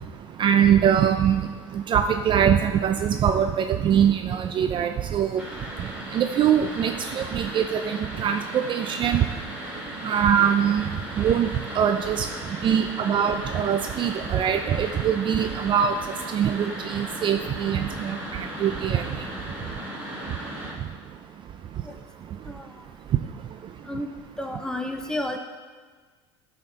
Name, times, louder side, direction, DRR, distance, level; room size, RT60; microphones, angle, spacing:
voice 1, 0.4-1.5 1.9-5.4 6.1-9.2 10.0-10.8 11.2-11.5 11.8-12.3 12.6-16.0 16.3-19.0, right 8 dB, 35° right, 7 dB, 0.4 m, -22 dB
sound 1, 5.4-20.7, equal, 10° right, 2.1 m, -36 dB
voice 2, 22.4-22.8 23.8-24.1 24.4-25.4, left 1 dB, 5° left, 4 dB, 0.7 m, -31 dB
8.9 x 4.3 x 3.9 m, 1.5 s
supercardioid pair, 95°, 13 cm